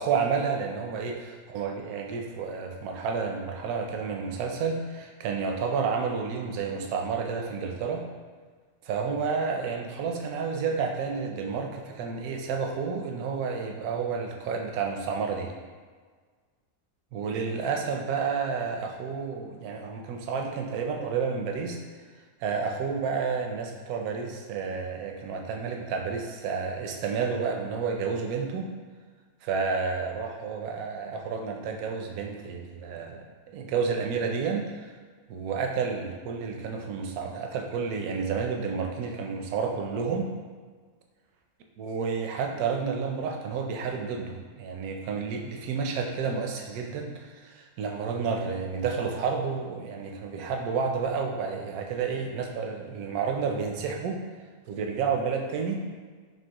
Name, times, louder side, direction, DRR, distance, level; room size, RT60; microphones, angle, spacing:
voice 1, 0.0-8.0 8.8-15.5 17.1-21.8 22.4-28.7 29.4-34.9 35.3-40.3 41.8-54.2 54.7-55.8, right 5 dB, 80° right, 2 dB, 1.0 m, -30 dB
5.3 x 2.8 x 2.9 m, 1.5 s
omnidirectional pair, 1.6 m